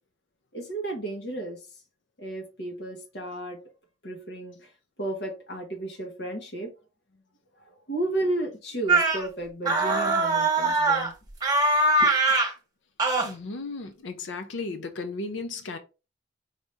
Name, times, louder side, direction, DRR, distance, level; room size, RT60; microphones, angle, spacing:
voice 1, 0.5-1.6 2.2-3.6 4.0-4.6 5.0-6.7 7.6-11.1 12.0-12.1, right 1 dB, 65° left, 1.3 m, -33 dB
sound 1, 8.9-9.2 9.7-11.1 11.4-12.5 13.0-13.3, right 2 dB, 20° right, 1.2 m, -22 dB
voice 2, 13.2-15.8, left 3 dB, 85° left, 0.5 m, -35 dB
4.9 x 2.7 x 3.4 m
head